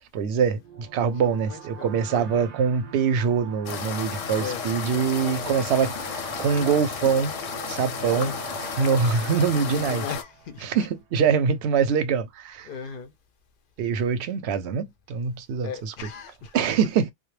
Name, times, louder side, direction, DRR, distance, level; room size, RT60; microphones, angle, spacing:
voice 1, 0.1-5.9 6.4-7.3 7.7-8.3 8.8-10.0 10.6-12.7 13.8-15.9 16.5-17.1, right 6 dB, 65° right, 0.8 m, -24 dB
sound 1, 0.6-11.0, right 7 dB, 90° right, 0.3 m, -43 dB
voice 2, 1.1-2.5 4.3-4.7 5.0-6.2 8.1-8.4 9.5-10.9 12.6-13.1 15.6-17.1, left 6 dB, 60° left, 0.6 m, -39 dB
sound 2, 3.7-10.2, left 7 dB, 85° left, 0.9 m, -33 dB
2.2 x 2.1 x 3.0 m
omnidirectional pair, 1.3 m